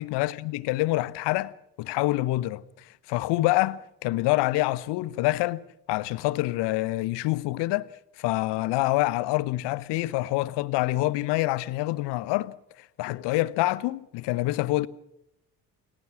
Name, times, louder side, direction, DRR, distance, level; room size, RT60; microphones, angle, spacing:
voice 1, 0.0-1.5 1.8-5.6 5.9-7.9 8.2-12.5 13.0-14.9, left 18 dB, 55° left, 1.1 m, -26 dB
28.5 x 17.5 x 6.1 m
figure-of-eight pair, 50°, 49 cm